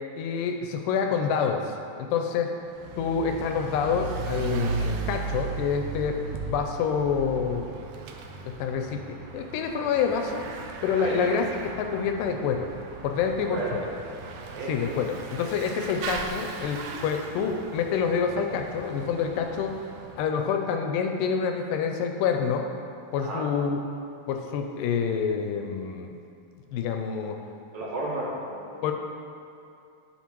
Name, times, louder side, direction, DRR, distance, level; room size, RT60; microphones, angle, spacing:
voice 1, 0.2-1.7 2.0-2.5 3.0-6.2 6.5-7.7 8.4-10.4 10.8-11.5 11.8-12.7 13.0-13.8 14.7-19.7 20.2-22.7 23.1-23.8 24.3-26.1 26.7-27.4 28.8-28.9, left 6 dB, 80° left, 4 dB, 2.1 m, -27 dB
Bicycle / Mechanisms, 2.6-20.2, right 4 dB, 85° right, 1.7 m, -37 dB
voice 2, 13.5-13.8 14.4-14.7 23.2-23.4 27.7-28.8, right 2 dB, 65° right, -5 dB, 2.2 m, -32 dB
11.5 x 5.8 x 3.0 m, 2.5 s
omnidirectional pair, 4.0 m